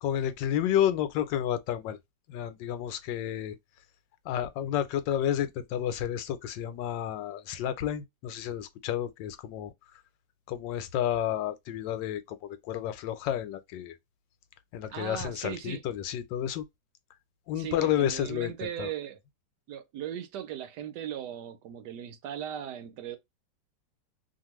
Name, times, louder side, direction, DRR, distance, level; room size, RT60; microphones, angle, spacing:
voice 1, 0.0-2.0 2.3-3.5 4.2-9.7 10.5-13.9 14.7-16.7 17.5-18.9, left 10 dB, 85° left, 1.3 m, -31 dB
voice 2, 14.9-15.8 17.6-19.2 19.7-23.2, right 10 dB, 75° right, 1.2 m, -38 dB
2.8 x 2.5 x 2.9 m
omnidirectional pair, 1.9 m